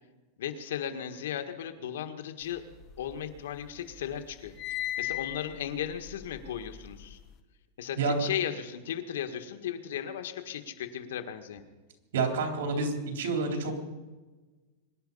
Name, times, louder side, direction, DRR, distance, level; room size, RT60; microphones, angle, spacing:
voice 1, 0.4-2.6 3.0-7.2 7.8-11.6, left 9 dB, 85° left, 7 dB, 1.7 m, -36 dB
sound 1, 2.6-3.6 3.9-7.3, left 13 dB, 25° left, 1.0 m, -38 dB
voice 2, 12.1-13.7, right 4 dB, 80° right, 3 dB, 3.8 m, -29 dB
23.5 x 11.0 x 5.6 m, 1.2 s
supercardioid pair, 170°, 0 cm